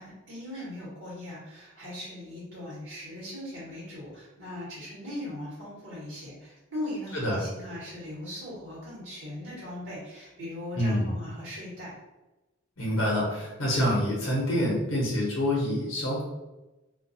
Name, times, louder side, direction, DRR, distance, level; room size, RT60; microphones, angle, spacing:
voice 1, 0.0-11.9, left 1 dB, 65° right, -8 dB, 1.1 m, -39 dB
voice 2, 7.1-7.4 10.8-11.1 12.8-16.2, equal, 90° left, -4 dB, 0.8 m, -26 dB
2.3 x 2.2 x 2.6 m, 1.0 s
head